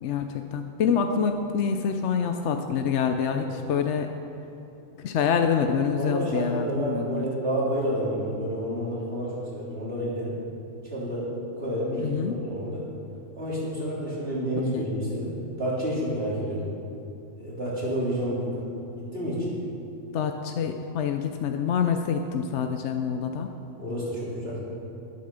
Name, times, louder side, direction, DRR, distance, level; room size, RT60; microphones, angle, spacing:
voice 1, 0.0-4.1 5.0-7.2 12.0-12.4 14.7-14.9 20.1-23.5, left 6 dB, 70° left, 6 dB, 0.9 m, -26 dB
voice 2, 6.0-10.3 10.9-11.3 11.6-12.9 13.4-16.6 17.4-18.7 19.0-19.5 23.8-24.6, equal, 55° right, -7 dB, 3.7 m, -29 dB
12.5 x 8.6 x 6.8 m, 2.9 s
omnidirectional pair, 1.3 m